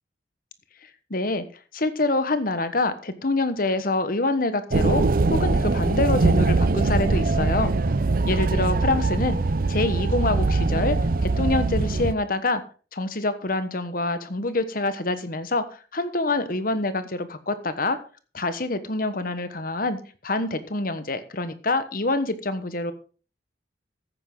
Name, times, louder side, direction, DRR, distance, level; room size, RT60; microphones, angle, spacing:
voice 1, 1.1-1.4 1.7-5.0 5.3-7.7 8.3-9.4 9.7-11.0 11.2-12.6 12.9-18.0 18.3-20.0 20.2-22.9, left 2 dB, 55° left, 12 dB, 1.3 m, -26 dB
sound 1, 4.7-12.1, right 3 dB, 55° right, 0.6 m, -22 dB
14.5 x 9.4 x 3.9 m, 0.37 s
head